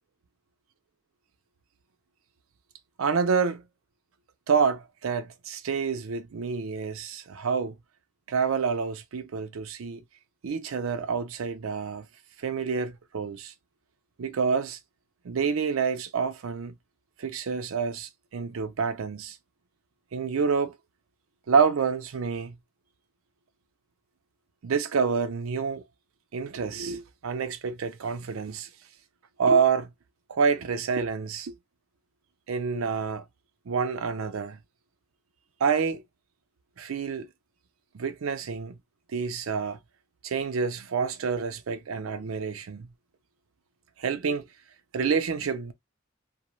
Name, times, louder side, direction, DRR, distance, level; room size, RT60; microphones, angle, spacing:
voice 1, 3.0-3.6 4.5-7.8 8.3-10.0 10.4-12.1 12.4-13.5 14.2-14.8 15.2-16.7 17.2-19.4 20.1-20.7 21.5-22.6 24.6-25.8 26.3-28.7 29.4-29.9 30.3-31.5 32.5-33.2 33.7-34.6 35.6-36.0 36.8-37.3 37.9-38.8 39.1-39.8 40.2-42.9 44.0-44.4 44.9-45.7, right 5 dB, 85° right, 0.5 m, -28 dB
2.3 x 2.1 x 3.0 m
head